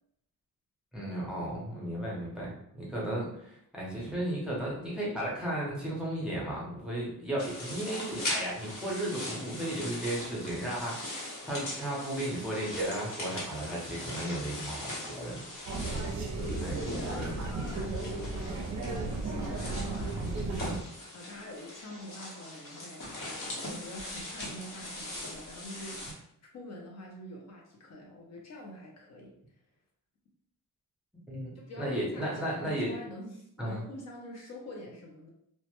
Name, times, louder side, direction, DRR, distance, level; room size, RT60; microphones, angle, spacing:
voice 1, 0.9-15.4 16.6-17.3 17.8-18.0 31.1-32.9 33.6-33.8, right 1 dB, 5° right, -6 dB, 0.6 m, -35 dB
sound 1, 7.4-26.1, left 1 dB, 75° left, 1.0 m, -41 dB
sound 2, 15.7-20.8, right 3 dB, 55° right, 0.5 m, -34 dB
voice 2, 16.4-18.6 19.2-20.8 21.1-26.3 26.5-29.3 31.7-35.3, left 1 dB, 50° left, -1 dB, 0.5 m, -45 dB
2.1 x 2.1 x 2.8 m, 0.73 s
wide cardioid pair, 160°, 34 cm